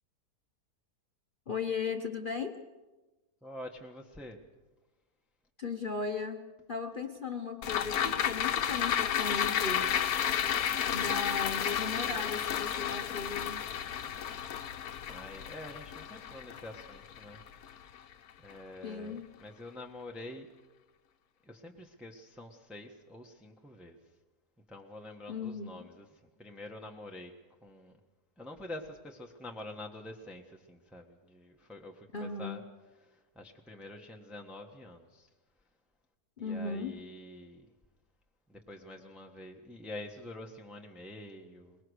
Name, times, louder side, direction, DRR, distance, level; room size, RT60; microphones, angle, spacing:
voice 1, 1.5-2.6 5.6-10.1 10.9-13.6 18.8-19.3 25.3-25.9 32.1-32.6 36.4-37.0, left 4 dB, 35° left, 4 dB, 1.0 m, -37 dB
voice 2, 3.4-4.4 15.1-17.4 18.4-20.5 21.4-24.0 24.7-26.0 26.4-27.3 27.6-27.9 28.4-32.6 33.1-35.3 36.4-37.7 38.5-41.8, left 1 dB, ahead, 1 dB, 1.4 m, -46 dB
sound 1, 7.6-18.1 18.5-18.6, left 9 dB, 70° left, 1.3 m, -32 dB
23.5 x 20.5 x 6.5 m, 1.2 s
omnidirectional pair, 1.7 m